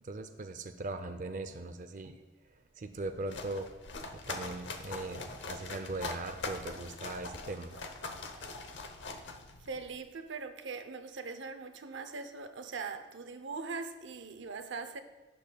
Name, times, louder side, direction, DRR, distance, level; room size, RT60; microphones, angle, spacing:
voice 1, 0.0-2.2 2.8-3.7 4.3-7.7, right 2 dB, 45° right, 0.5 m, -39 dB
sound 1, 3.0-10.0, left 3 dB, 80° left, 0.8 m, -42 dB
voice 2, 9.6-15.0, right 4 dB, 90° right, 0.7 m, -41 dB
12.0 x 8.5 x 2.3 m
head